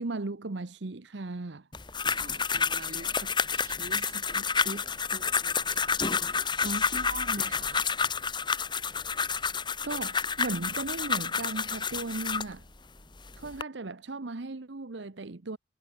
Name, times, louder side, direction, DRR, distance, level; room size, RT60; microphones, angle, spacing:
voice 1, 0.0-1.7 9.8-12.7 13.4-15.6, right 3 dB, 65° right, 0.9 m, -36 dB
sound 1, 1.7-12.5 13.2-13.6, left 5 dB, 25° left, 1.7 m, -29 dB
voice 2, 2.2-7.9, right 2 dB, 45° right, 2.0 m, -42 dB
head